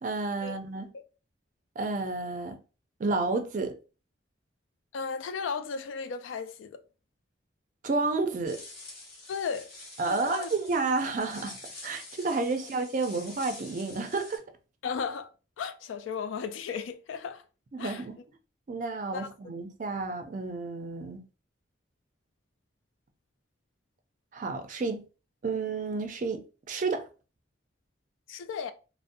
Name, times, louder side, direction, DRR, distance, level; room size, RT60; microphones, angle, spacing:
voice 1, 0.0-0.9 1.8-2.6 3.0-3.7 7.8-8.6 10.0-11.6 11.8-14.4 17.7-18.2 18.7-21.2 24.3-25.0 25.4-27.0, right 3 dB, 40° right, 0.4 m, -31 dB
voice 2, 4.9-6.8 9.3-9.7 10.0-10.5 14.8-15.3 15.6-17.4 17.8-18.1 19.1-19.3 28.3-28.7, left 6 dB, 85° left, 0.3 m, -35 dB
sound 1, 8.4-14.4, left 2 dB, 50° left, 0.9 m, -47 dB
2.6 x 2.0 x 2.5 m
head